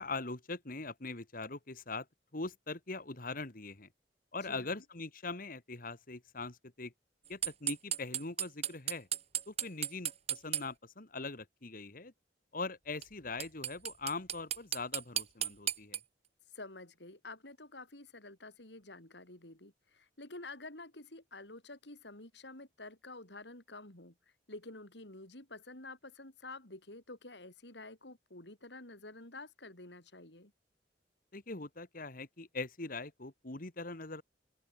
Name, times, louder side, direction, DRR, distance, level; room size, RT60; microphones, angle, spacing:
voice 1, 0.0-2.1 2.3-3.9 4.3-6.9 7.3-9.1 9.5-12.1 12.5-16.0 31.3-34.2, left 3 dB, 50° left, 2.0 m, -41 dB
voice 2, 4.4-4.8 16.5-24.1 24.5-30.5, left 2 dB, 75° left, 6.0 m, -49 dB
sound 1, 7.4-10.6 13.0-13.1 13.4-16.0, right 10 dB, 35° right, 1.4 m, -34 dB
open air
head